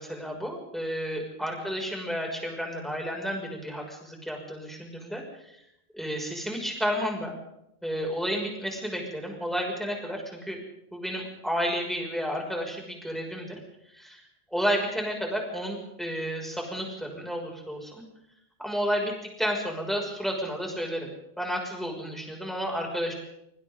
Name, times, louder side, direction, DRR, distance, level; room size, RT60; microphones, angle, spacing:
voice 1, 0.0-5.2 5.9-7.3 7.8-10.6 10.9-13.6 13.9-14.2 14.5-17.9 18.6-21.1 21.4-23.1, equal, ahead, 0 dB, 6.3 m, -31 dB
26.5 x 25.5 x 3.9 m, 0.80 s
omnidirectional pair, 1.0 m